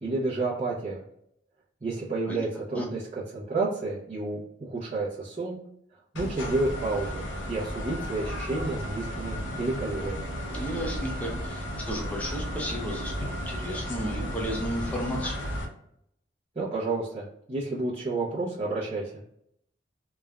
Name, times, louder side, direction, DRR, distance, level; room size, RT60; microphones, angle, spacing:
voice 1, 0.0-1.0 1.8-5.6 6.1-10.3 16.5-19.2, right 3 dB, 35° right, -10 dB, 0.7 m, -30 dB
sound 1, 6.2-15.7, equal, 80° left, 0.6 m, -34 dB
voice 2, 10.5-15.4, equal, 10° left, -1 dB, 0.5 m, -34 dB
3.3 x 2.2 x 2.3 m, 0.74 s
head